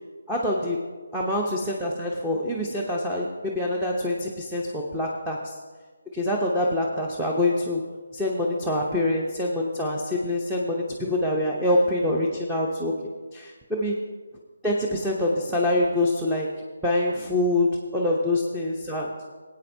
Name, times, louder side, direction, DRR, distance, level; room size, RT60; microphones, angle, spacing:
voice 1, 0.3-0.8 1.1-5.6 6.1-7.8 8.1-13.0 13.3-14.0 14.6-19.2, left 1 dB, 5° right, -3 dB, 0.8 m, -25 dB
17.0 x 8.6 x 2.7 m, 1.4 s
figure-of-eight pair, 155°, 0 cm